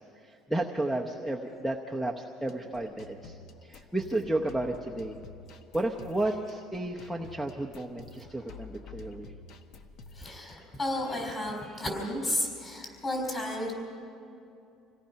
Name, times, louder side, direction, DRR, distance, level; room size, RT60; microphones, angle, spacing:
voice 1, 0.0-5.2 5.7-9.3, right 1 dB, ahead, -2 dB, 0.9 m, -33 dB
sound 1, 2.5-10.8, left 4 dB, 60° left, 1.3 m, -50 dB
voice 2, 10.1-13.7, left 1 dB, 25° left, 1 dB, 5.1 m, -33 dB
26.5 x 17.5 x 5.8 m, 2.7 s
cardioid pair, 155°, 0 cm